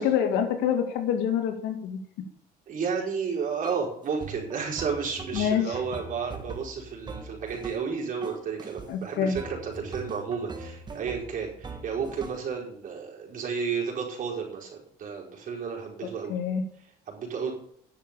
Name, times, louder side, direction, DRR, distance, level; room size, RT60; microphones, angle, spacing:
voice 1, 0.0-2.0 5.3-5.7 8.9-9.4 16.3-16.6, left 8 dB, 90° left, 5 dB, 2.2 m, -26 dB
voice 2, 2.7-16.3 16.8-17.5, right 6 dB, 50° right, -2 dB, 4.9 m, -32 dB
sound 1, 3.6-3.9 4.2-7.9 8.2-8.9 9.4-12.5, right 3 dB, 25° right, 1.7 m, -41 dB
10.5 x 7.6 x 6.8 m, 0.66 s
cardioid pair, 110°, 17 cm